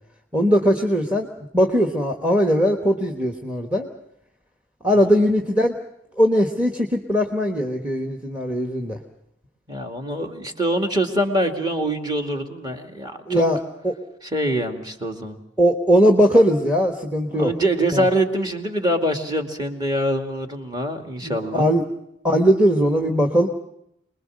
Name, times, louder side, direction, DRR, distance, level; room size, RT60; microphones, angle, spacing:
voice 1, 0.3-1.3 1.5-3.9 4.8-5.8 6.2-9.0 13.3-13.9 15.6-17.5 17.9-18.0 21.2-21.8 22.2-23.5, equal, 10° right, 4 dB, 1.3 m, -19 dB
voice 2, 9.7-13.5 14.3-15.4 17.3-21.7, right 1 dB, 25° right, 4 dB, 2.3 m, -24 dB
25.5 x 21.0 x 6.5 m, 0.78 s
head